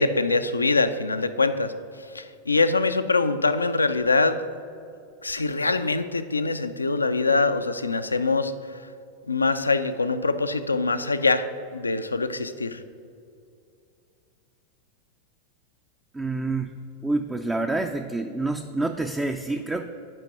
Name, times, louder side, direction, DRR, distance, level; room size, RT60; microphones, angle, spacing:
voice 1, 0.0-1.7 2.0-4.4 5.2-8.8 9.3-12.8, left 3 dB, 80° left, 11 dB, 0.4 m, -24 dB
voice 2, 16.1-19.9, right 2 dB, 10° right, 5 dB, 0.4 m, -28 dB
7.7 x 5.2 x 5.8 m, 2.5 s
figure-of-eight pair, 90°, 0 cm